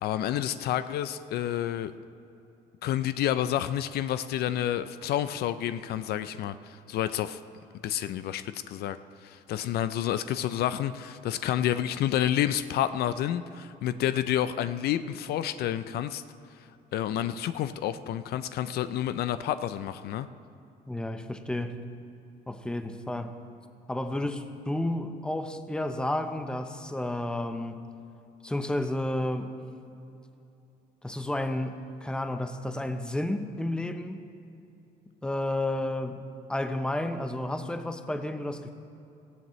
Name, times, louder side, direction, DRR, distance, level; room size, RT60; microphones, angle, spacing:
voice 1, 0.0-1.9 2.8-7.4 7.8-16.2 16.9-20.3, left 11 dB, 70° left, 12 dB, 0.5 m, -29 dB
voice 2, 20.9-21.8 22.5-23.4 23.9-27.8 28.4-29.6 31.0-34.2 35.2-38.7, left 1 dB, 5° left, 8 dB, 0.8 m, -31 dB
18.0 x 15.0 x 3.2 m, 2.8 s
cardioid pair, 110°, 17 cm